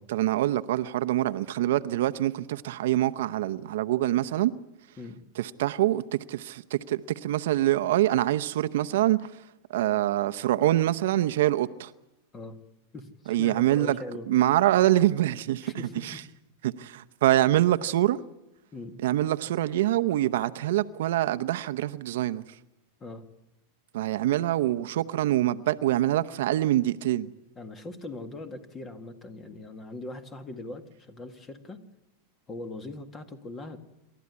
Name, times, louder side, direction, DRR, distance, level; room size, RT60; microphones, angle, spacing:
voice 1, 0.1-4.5 5.4-6.0 6.3-9.3 9.7-11.9 13.3-14.0 14.3-15.7 16.0-16.2 16.6-18.2 19.0-22.4 23.9-27.3, right 14 dB, 75° right, 0.8 m, -25 dB
voice 2, 12.9-14.3 15.6-16.2 18.7-19.0 23.0-23.3 27.6-31.8 32.5-33.8, left 2 dB, 20° left, 1.9 m, -41 dB
27.5 x 12.5 x 9.6 m
supercardioid pair, 140°, 0 cm